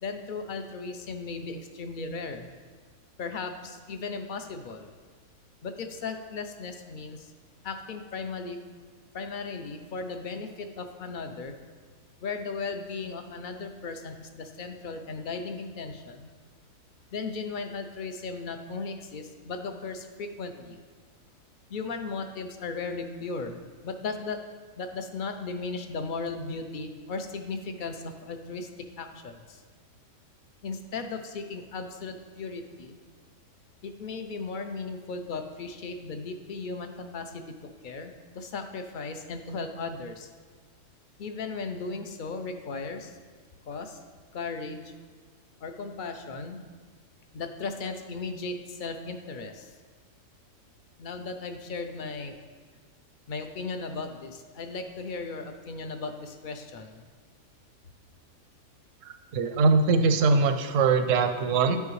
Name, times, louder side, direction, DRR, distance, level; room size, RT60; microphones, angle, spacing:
voice 1, 0.0-2.5 3.2-4.9 5.6-7.2 7.6-8.6 9.1-11.5 12.2-16.3 17.1-20.8 21.7-24.4 24.8-28.7 29.0-29.3 30.6-33.0 33.8-37.4 37.8-40.3 41.2-43.1 43.7-44.0 44.3-44.9 45.6-46.6 47.3-49.7 51.0-52.3 53.3-57.0, left 4 dB, 55° left, 7 dB, 0.6 m, -36 dB
voice 2, 59.0-61.8, right 4 dB, 85° right, 8 dB, 1.0 m, -22 dB
9.9 x 5.5 x 3.1 m, 1.5 s
omnidirectional pair, 1.3 m